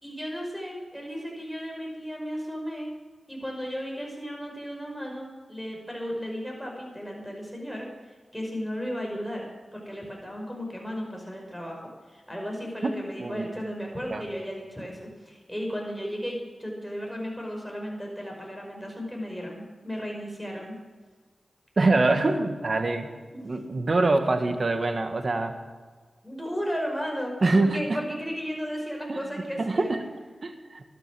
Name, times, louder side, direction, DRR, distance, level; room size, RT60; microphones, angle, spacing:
voice 1, 0.0-2.9 3.3-7.9 8.3-9.4 9.7-20.8 23.3-23.4 26.2-29.9, equal, ahead, 0 dB, 5.4 m, -35 dB
voice 2, 21.8-23.1 23.4-25.6 27.4-28.0 29.1-29.2 29.6-30.1 30.4-30.8, right 2 dB, 55° right, 7 dB, 1.6 m, -24 dB
13.0 x 12.0 x 6.3 m, 1.4 s
cardioid pair, 45°, 0 cm